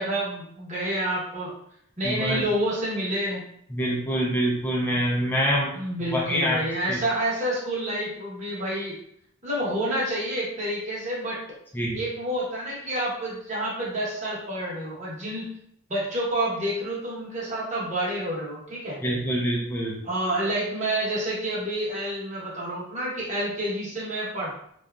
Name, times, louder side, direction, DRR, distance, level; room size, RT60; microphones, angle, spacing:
voice 1, 0.0-1.5 2.0-3.4 5.7-9.0 9.4-11.4 11.9-15.5 15.9-19.0 20.0-24.5, right 1 dB, 35° right, -6 dB, 1.0 m, -28 dB
voice 2, 2.0-2.4 3.7-5.8 6.1-6.6 6.9-7.0 11.8-12.0 19.0-20.0, equal, 10° left, -4 dB, 0.4 m, -25 dB
2.7 x 2.3 x 2.3 m, 0.69 s
head